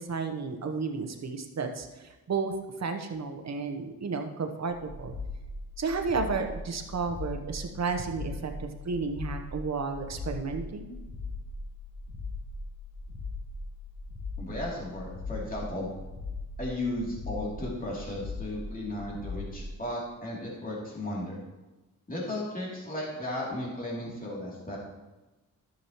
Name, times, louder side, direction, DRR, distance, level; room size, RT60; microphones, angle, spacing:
voice 1, 0.0-2.5 2.8-5.1 5.8-11.0, right 4 dB, 55° right, 5 dB, 1.1 m, -32 dB
sound 1, 4.7-19.6, left 3 dB, 80° left, 1.9 m, -40 dB
voice 2, 14.4-15.9 16.6-21.4 22.1-24.8, left 1 dB, 25° left, -5 dB, 3.0 m, -35 dB
12.0 x 7.3 x 3.1 m, 1.1 s
cardioid pair, 70°, 33 cm